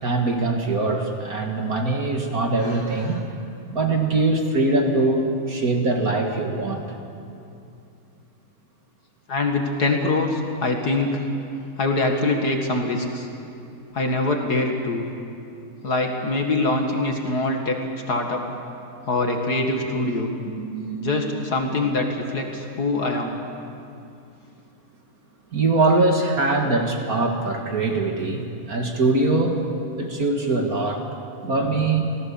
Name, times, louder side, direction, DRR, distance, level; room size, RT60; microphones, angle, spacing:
voice 1, 0.0-3.3 3.7-7.0 20.6-21.4 25.5-29.6 30.0-31.0 31.4-32.2, right 2 dB, 35° right, 2 dB, 1.5 m, -22 dB
voice 2, 9.3-11.2 11.8-13.3 13.9-15.1 15.8-17.8 18.1-18.4 19.1-20.3 21.0-23.4, left 2 dB, 35° left, 2 dB, 1.8 m, -23 dB
27.0 x 18.0 x 7.1 m, 2.6 s
omnidirectional pair, 3.8 m